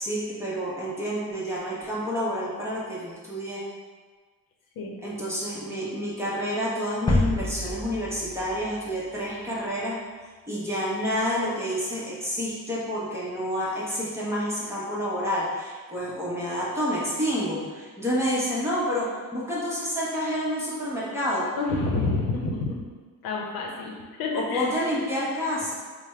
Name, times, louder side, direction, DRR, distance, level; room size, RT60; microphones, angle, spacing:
voice 1, 0.0-3.6 5.0-10.0 10.5-21.5 24.3-25.7, equal, 5° right, -7 dB, 0.9 m, -29 dB
sound 1, 7.1-9.6, left 2 dB, 15° left, 0.3 m, -28 dB
voice 2, 21.6-22.8 23.2-24.7, left 3 dB, 75° left, -1 dB, 0.7 m, -28 dB
3.4 x 2.1 x 4.3 m, 1.5 s
cardioid pair, 125°, 36 cm